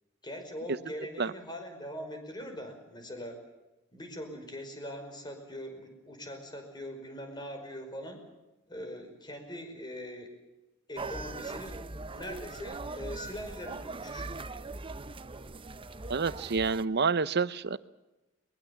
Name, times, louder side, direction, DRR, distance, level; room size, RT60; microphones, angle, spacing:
voice 1, 0.2-3.4 3.9-8.2 8.7-10.4 10.9-11.8 12.1-14.3, equal, 20° left, 5 dB, 5.3 m, -42 dB
sound 1, 11.0-16.8, right 3 dB, 25° right, 0.8 m, -40 dB
voice 2, 16.1-17.8, right 5 dB, 55° right, 16 dB, 0.8 m, -28 dB
22.5 x 22.0 x 7.3 m, 1.0 s
head